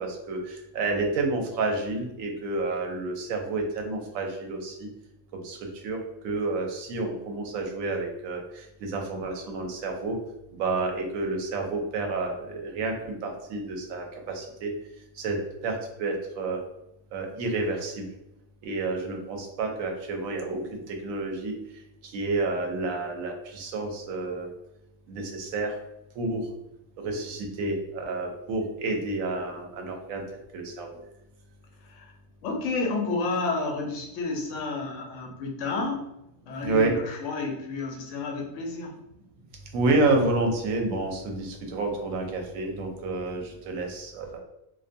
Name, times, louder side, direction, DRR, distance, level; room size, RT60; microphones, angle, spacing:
voice 1, 0.0-4.9 5.3-10.2 10.5-14.7 15.2-15.4 15.6-16.6 17.1-18.1 18.6-21.5 22.1-24.5 25.1-25.7 26.2-26.4 27.0-30.2 30.5-30.9 36.6-37.0 39.7-44.4, right 3 dB, 75° right, 3 dB, 1.0 m, -29 dB
voice 2, 32.4-36.0 36.5-39.0, left 3 dB, 70° left, 0 dB, 0.9 m, -30 dB
2.5 x 2.1 x 2.6 m, 0.87 s
omnidirectional pair, 1.4 m